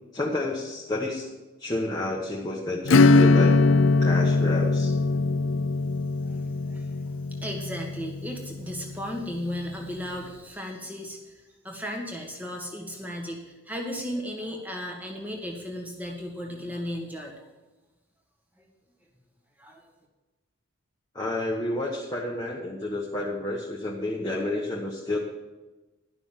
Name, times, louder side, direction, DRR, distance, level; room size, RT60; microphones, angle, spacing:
voice 1, 0.1-1.3 1.6-3.6 4.0-5.0 21.1-25.2, left 2 dB, 20° left, -3 dB, 1.1 m, -30 dB
Acoustic guitar / Strum, 2.9-9.1, left 3 dB, 65° left, 0.4 m, -21 dB
voice 2, 6.3-6.9 7.4-17.4 18.6-18.7 19.6-19.9, equal, 10° right, 1 dB, 1.6 m, -35 dB
11.5 x 6.2 x 7.4 m, 1.1 s
head